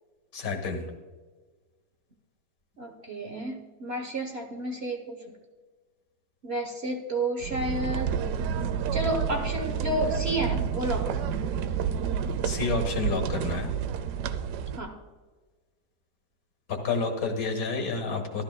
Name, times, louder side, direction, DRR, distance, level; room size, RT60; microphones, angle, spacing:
voice 1, 0.3-0.9 12.4-13.7 16.7-18.4, left 4 dB, 60° left, 3 dB, 2.0 m, -29 dB
voice 2, 2.8-5.2 6.4-8.2 8.9-11.2 14.7-15.0, right 1 dB, 45° right, 3 dB, 1.0 m, -31 dB
sound 1, 7.4-14.8, right 7 dB, 85° right, 1.2 m, -29 dB
13.0 x 13.0 x 2.2 m, 1.4 s
omnidirectional pair, 1.7 m